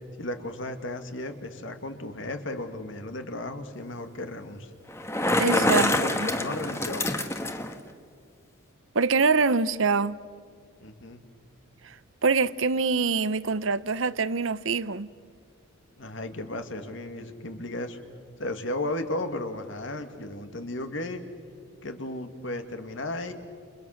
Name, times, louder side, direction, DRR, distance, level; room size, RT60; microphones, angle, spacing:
voice 1, 0.2-4.7 5.4-7.2 10.8-11.2 16.0-18.0 18.4-21.2 21.8-23.3, left 1 dB, 60° left, 2.1 m, -34 dB
Bicycle, 4.9-7.8, left 1 dB, 15° left, 1.4 m, -26 dB
voice 2, 5.4-6.3 8.9-10.2 11.8-11.9 12.2-15.1, right 4 dB, 65° right, 0.8 m, -25 dB
30.0 x 30.0 x 6.6 m
head